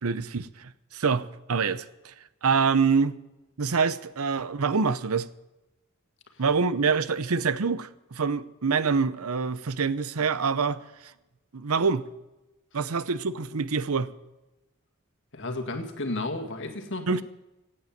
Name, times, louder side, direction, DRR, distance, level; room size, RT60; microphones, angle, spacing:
voice 1, 0.0-2.1 2.4-3.1 3.6-5.3 6.4-11.1 11.5-12.1 12.7-14.1 17.1-17.2, right 5 dB, 80° right, 0.7 m, -26 dB
voice 2, 15.3-17.2, left 2 dB, 60° left, 1.9 m, -33 dB
17.0 x 8.8 x 7.4 m
head